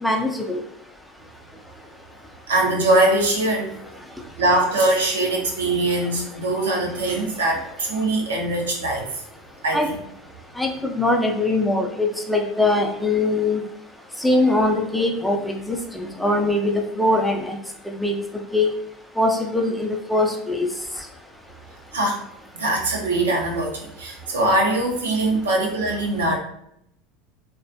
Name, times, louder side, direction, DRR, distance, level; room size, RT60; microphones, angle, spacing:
voice 1, 0.0-0.6 9.7-9.9 10.6-13.6 14.2-17.6 18.0-18.2 18.5-18.7 19.2-20.7, left 2 dB, 5° left, 2 dB, 0.4 m, -22 dB
voice 2, 2.5-3.7 4.4-9.1 9.6-10.0 21.9-22.2 22.5-26.4, right 2 dB, 85° right, -1 dB, 0.5 m, -22 dB
2.3 x 2.2 x 2.5 m, 0.75 s
hypercardioid pair, 80°, 0 cm